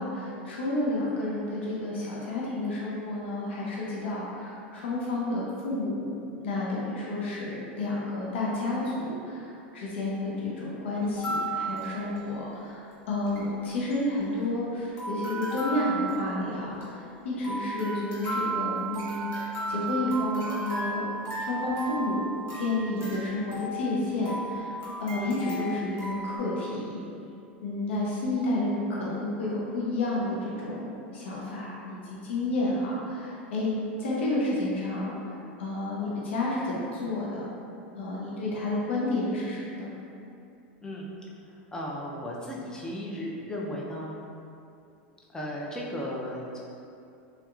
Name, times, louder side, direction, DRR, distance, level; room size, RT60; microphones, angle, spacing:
voice 1, 0.0-21.0 21.4-27.0 27.6-37.5 38.0-39.9, left 2 dB, 85° left, -5 dB, 0.6 m, -30 dB
sound 1, 11.0-12.6 12.9-13.0 13.2-13.4 13.9-14.7 15.0-26.4, right 2 dB, 40° left, 1.3 m, -35 dB
voice 2, 40.8-41.1 41.7-44.2 45.3-46.6, equal, 10° left, -4 dB, 0.5 m, -35 dB
3.5 x 2.8 x 2.4 m, 2.6 s
hypercardioid pair, 110°, 6 cm